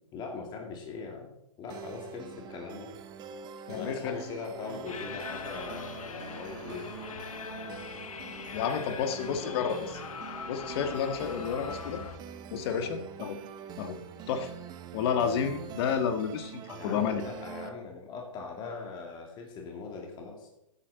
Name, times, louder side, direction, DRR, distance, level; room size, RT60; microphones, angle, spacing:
voice 1, 0.1-2.9 3.7-6.9 9.5-9.7 16.7-20.5, left 4 dB, 25° left, 1 dB, 2.4 m, -41 dB
sound 1, 1.7-17.7, right 7 dB, 25° right, 0.9 m, -45 dB
voice 2, 3.7-4.2 8.5-10.0 10.5-12.0 12.5-13.4 13.8-14.0 14.3-14.5 14.9-17.2, left 7 dB, 45° left, 7 dB, 1.6 m, -31 dB
sound 2, 4.9-12.2, left 6 dB, 80° left, 1.0 m, -41 dB
13.5 x 8.7 x 4.1 m, 0.83 s
hypercardioid pair, 130°, 18 cm